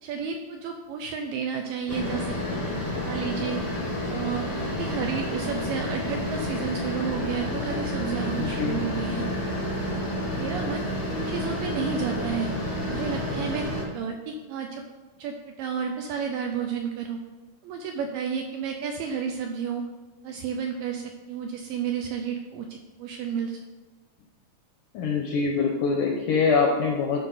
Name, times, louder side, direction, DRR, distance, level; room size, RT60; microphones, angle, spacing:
voice 1, 0.0-2.6 3.0-3.6 4.1-9.3 9.9-10.1 10.4-12.5 12.9-13.7 13.9-14.8 15.2-17.2 17.6-19.8 20.2-23.6, right 6 dB, 80° right, 4 dB, 2.0 m, -31 dB
sound 1, 1.9-13.8, left 1 dB, 60° left, 0.5 m, -30 dB
voice 2, 8.4-8.8 24.9-27.2, left 5 dB, 80° left, 1 dB, 1.9 m, -24 dB
12.5 x 4.9 x 3.9 m, 1.2 s
omnidirectional pair, 4.5 m